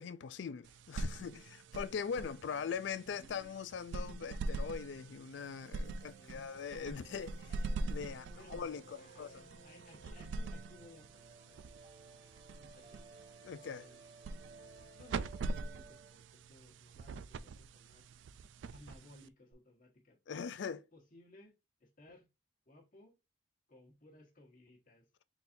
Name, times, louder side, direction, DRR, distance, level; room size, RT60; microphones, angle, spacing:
voice 1, 0.0-9.4 13.4-13.9 20.3-20.8, left 6 dB, 70° left, 0.4 m, -41 dB
sound 1, 0.6-19.5, right 2 dB, 75° right, 0.3 m, -44 dB
voice 2, 2.5-3.6 6.2-6.5 8.3-11.8 12.6-13.2 13.7-14.4 15.0-18.1 18.7-20.2 20.5-22.3 22.6-23.2 23.7-25.1, left 1 dB, 45° left, 1.4 m, -60 dB
sound 2, 5.3-16.1, right 3 dB, 60° right, 1.7 m, -59 dB
4.1 x 3.9 x 2.5 m
head